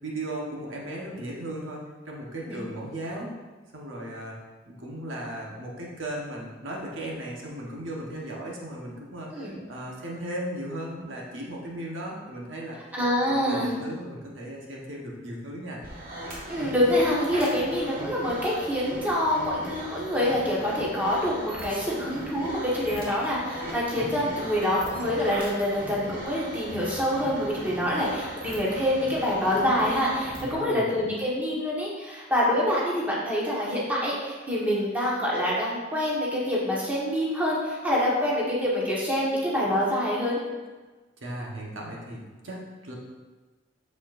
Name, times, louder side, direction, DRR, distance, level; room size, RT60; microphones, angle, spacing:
voice 1, 0.0-3.3 3.7-4.4 4.7-12.9 13.2-15.8 30.4-31.0 41.2-43.0, right 1 dB, 75° right, -3 dB, 1.4 m, -36 dB
voice 2, 12.9-13.7 16.5-40.4, left 1 dB, 10° right, -6 dB, 1.6 m, -26 dB
sound 1, 15.8-30.6, right 1 dB, 50° right, 1.6 m, -38 dB
7.4 x 7.0 x 2.6 m, 1.3 s
head